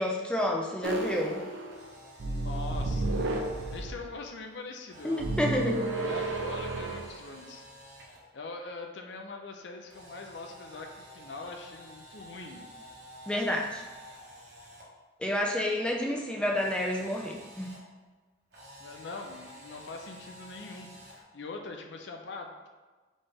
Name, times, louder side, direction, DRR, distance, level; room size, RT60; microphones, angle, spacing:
voice 1, 0.0-1.5 5.0-5.9 13.3-13.8 15.2-17.7, left 1 dB, 5° left, 0 dB, 0.4 m, -29 dB
sound 1, 0.8-1.9 2.2-4.1 5.2-7.2, right 2 dB, 75° right, 0.5 m, -32 dB
Camera, 1.6-3.8 4.9-8.2 9.9-14.8 16.5-17.8 18.5-21.2, equal, 60° right, 1.2 m, -50 dB
voice 2, 2.2-3.4 3.7-5.3 6.0-7.7 8.3-12.7 16.4-16.5 18.8-22.7, left 3 dB, 70° left, 3 dB, 0.5 m, -42 dB
4.2 x 3.3 x 3.5 m, 1.3 s
head